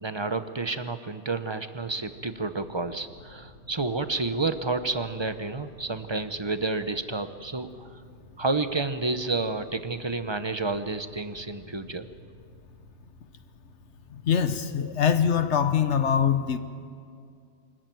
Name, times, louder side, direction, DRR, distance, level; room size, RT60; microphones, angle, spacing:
voice 1, 0.0-7.9 8.4-12.0, right 3 dB, 25° right, 10 dB, 0.8 m, -30 dB
sound 1, 1.8-15.3, equal, 70° right, 5.2 m, -53 dB
voice 2, 14.1-16.6, left 8 dB, 75° left, 11 dB, 1.3 m, -23 dB
25.0 x 14.0 x 9.2 m, 2.3 s
omnidirectional pair, 1.2 m